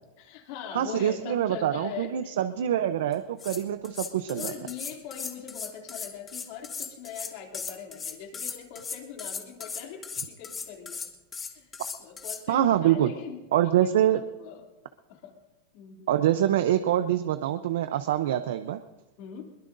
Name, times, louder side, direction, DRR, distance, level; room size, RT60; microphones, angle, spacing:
voice 1, 0.2-2.3 4.3-11.0 11.5-11.7 12.0-14.6 15.1-15.3 15.7-16.1 19.2-19.5, left 8 dB, 55° left, 2 dB, 2.8 m, -41 dB
voice 2, 0.7-4.5 12.5-13.1 13.5-14.2 16.1-18.8, right 11 dB, 80° right, 10 dB, 0.7 m, -25 dB
sound 1, 3.1-3.2 3.4-12.4, left 5 dB, 20° left, 1.3 m, -37 dB
22.0 x 21.0 x 2.7 m, 1.1 s
supercardioid pair, 150°, 0 cm